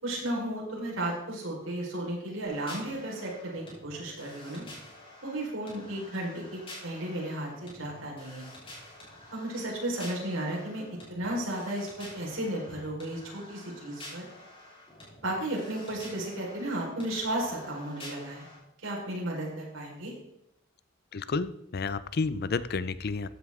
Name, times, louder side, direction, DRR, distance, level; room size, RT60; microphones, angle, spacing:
voice 1, 0.0-4.6 5.2-8.5 9.3-10.8 11.1-14.3 15.2-18.5 18.8-20.1, right 1 dB, 80° right, -3 dB, 4.8 m, -34 dB
sound 1, 2.4-18.6, left 1 dB, 30° left, 4.9 m, -49 dB
voice 2, 21.1-23.3, left 4 dB, 50° left, 15 dB, 0.5 m, -31 dB
14.5 x 9.4 x 3.7 m, 0.82 s
head